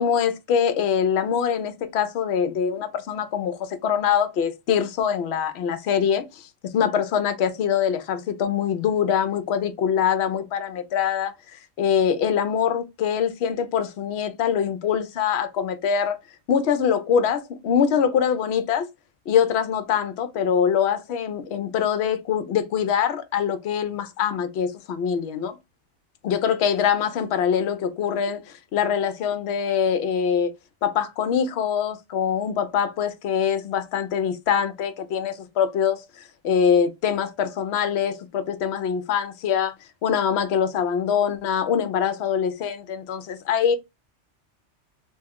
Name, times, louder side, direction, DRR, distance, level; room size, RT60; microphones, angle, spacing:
voice 1, 0.0-16.2 16.5-18.9 19.3-25.5 26.2-30.5 30.8-39.7 40.0-43.8, left 8 dB, 70° left, 0.8 m, -24 dB
3.0 x 2.2 x 3.5 m
omnidirectional pair, 1.2 m